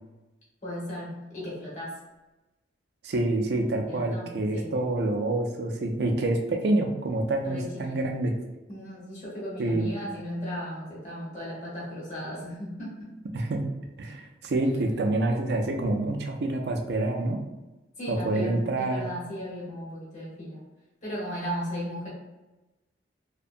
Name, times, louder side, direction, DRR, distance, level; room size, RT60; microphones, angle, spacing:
voice 1, 0.6-1.9 3.9-4.7 7.4-8.1 8.7-13.1 18.0-20.6 21.0-22.1, equal, 40° left, -6 dB, 1.0 m, -36 dB
voice 2, 3.0-8.3 9.6-9.9 13.3-13.6 14.0-17.4 18.1-19.0, right 2 dB, 65° right, 3 dB, 0.4 m, -27 dB
2.6 x 2.2 x 2.4 m, 1.1 s
head